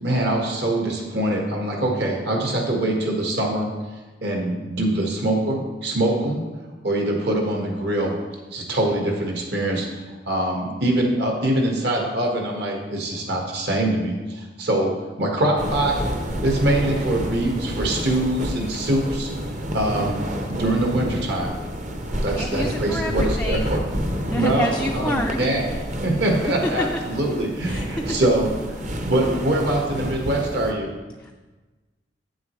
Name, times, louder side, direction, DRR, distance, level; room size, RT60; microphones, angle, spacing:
voice 1, 0.0-3.7 4.2-6.4 6.8-8.1 8.5-16.0 16.4-19.3 19.7-20.2 20.5-21.6 22.2-23.8 24.3-25.7 26.0-28.5 29.0-30.9, right 1 dB, 65° right, 0 dB, 1.5 m, -23 dB
sound 1, 15.6-30.7, equal, 45° right, 0.8 m, -29 dB
voice 2, 22.3-23.7 24.3-25.8 26.4-26.9 27.6-28.2 31.2-31.3, left 1 dB, 5° left, 1 dB, 0.3 m, -29 dB
9.0 x 7.3 x 3.1 m, 1.2 s
head